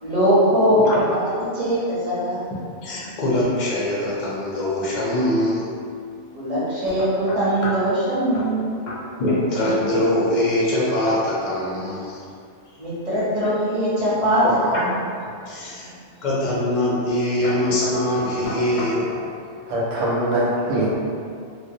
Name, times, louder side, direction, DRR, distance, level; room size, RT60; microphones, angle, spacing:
voice 1, 0.0-1.2 1.5-2.4 6.3-8.8 12.8-15.0 15.6-16.0, equal, 35° right, -11 dB, 0.8 m, -21 dB
voice 2, 2.8-5.7 9.2-12.2 14.4-14.8 15.5-15.9 16.2-19.1, left 1 dB, 60° left, -6 dB, 0.5 m, -23 dB
sound 1, 7.0-7.9 8.3-8.6 8.9-9.0 9.3-10.0 10.3-10.6 14.0-14.6 15.2-15.7 16.4-16.7 17.0-17.2 17.4-19.3, equal, 85° left, 0.9 m, -34 dB
voice 3, 19.7-20.9, right 1 dB, 85° right, -5 dB, 0.9 m, -22 dB
2.3 x 2.0 x 2.6 m, 2.3 s
omnidirectional pair, 1.2 m